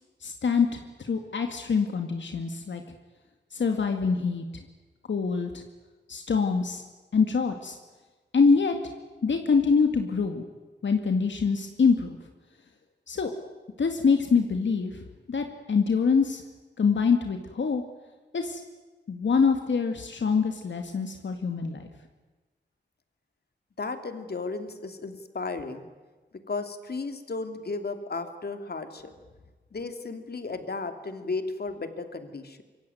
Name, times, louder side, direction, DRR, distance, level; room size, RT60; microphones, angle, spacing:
voice 1, 0.2-2.8 3.5-4.5 5.1-5.6 6.1-6.8 7.1-7.8 8.3-8.8 9.2-10.4 10.8-12.2 13.1-13.3 13.8-14.9 15.3-16.4 16.8-17.8 18.3-18.6 19.1-21.9, left 5 dB, 80° left, 5 dB, 2.1 m, -25 dB
voice 2, 23.8-25.9 26.5-29.1 29.7-32.6, left 3 dB, 60° left, 8 dB, 2.9 m, -34 dB
26.0 x 23.5 x 9.3 m, 1.3 s
wide cardioid pair, 90°, 19 cm